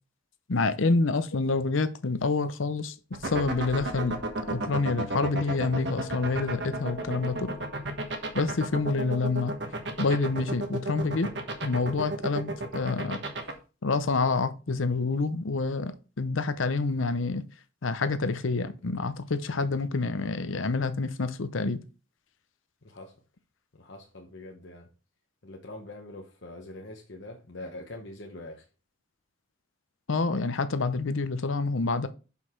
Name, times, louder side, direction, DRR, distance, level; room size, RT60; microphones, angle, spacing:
voice 1, 0.5-2.9 3.2-4.2 4.5-7.5 8.3-9.5 10.0-11.3 11.6-13.2 13.8-15.9 16.2-17.4 17.8-21.8 30.1-32.1, left 3 dB, 80° left, 0.7 m, -27 dB
sound 1, 3.1-13.5, right 2 dB, 60° right, 1.4 m, -31 dB
voice 2, 8.7-9.0 22.8-23.1 23.7-24.9 25.4-28.6, left 2 dB, 65° left, 1.0 m, -44 dB
6.3 x 5.5 x 4.5 m
head